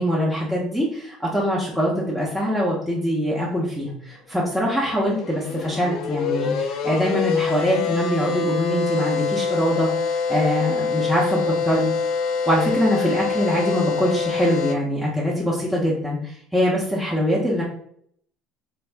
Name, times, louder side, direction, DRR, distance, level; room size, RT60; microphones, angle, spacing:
voice 1, 0.0-11.9 12.5-17.6, equal, 5° left, -5 dB, 0.7 m, -23 dB
sound 1, 4.6-14.7, left 5 dB, 60° left, 0.4 m, -25 dB
3.4 x 2.6 x 3.4 m, 0.66 s
cardioid pair, 135°, 0 cm